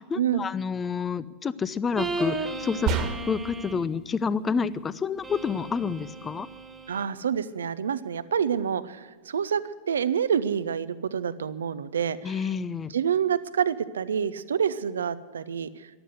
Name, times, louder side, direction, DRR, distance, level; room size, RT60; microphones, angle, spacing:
voice 1, 0.0-3.0 3.3-6.5 12.2-12.9, left 5 dB, 20° left, 18 dB, 0.6 m, -29 dB
sound 1, 2.0-3.9 5.2-7.0, right 2 dB, 15° right, 1.7 m, -35 dB
sound 2, 2.9-3.6, right 5 dB, 40° right, 1.7 m, -28 dB
voice 2, 6.9-12.4 12.9-15.7, right 8 dB, 65° right, 15 dB, 0.7 m, -27 dB
14.0 x 12.0 x 8.0 m, 1.4 s
figure-of-eight pair, 90°, 0 cm